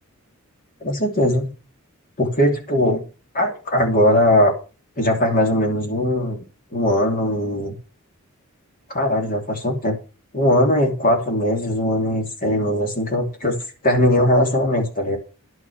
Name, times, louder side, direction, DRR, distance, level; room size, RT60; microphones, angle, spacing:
voice 1, 0.8-1.5 2.2-3.0 3.3-4.5 5.0-6.4 6.7-7.7 8.9-10.0 10.3-13.6 13.8-15.2, left 1 dB, 40° left, 2 dB, 2.7 m, -19 dB
11.0 x 6.2 x 6.4 m, 0.34 s
head